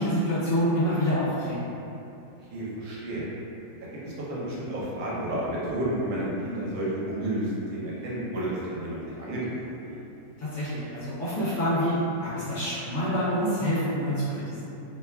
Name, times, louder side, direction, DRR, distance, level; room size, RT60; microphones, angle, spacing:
voice 1, 0.0-1.7 10.4-14.6, equal, 60° left, -10 dB, 0.8 m, -27 dB
voice 2, 2.5-3.2 3.9-9.5 9.8-10.0, right 1 dB, 85° right, -7 dB, 1.2 m, -31 dB
2.9 x 2.2 x 2.2 m, 2.8 s
omnidirectional pair, 1.7 m